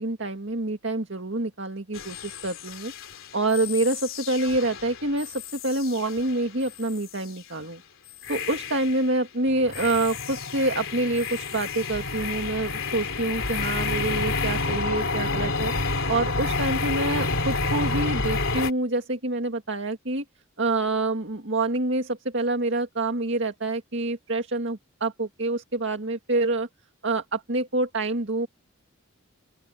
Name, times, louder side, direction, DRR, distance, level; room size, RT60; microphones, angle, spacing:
voice 1, 0.0-2.9 3.3-7.8 8.3-15.7 16.1-20.2 20.6-26.7 27.0-28.5, right 2 dB, 55° right, 2.2 m, -27 dB
sound 1, 1.9-6.4 6.7-7.1 8.2-9.1 9.5-18.7, left 3 dB, 60° left, 3.3 m, -29 dB
open air
head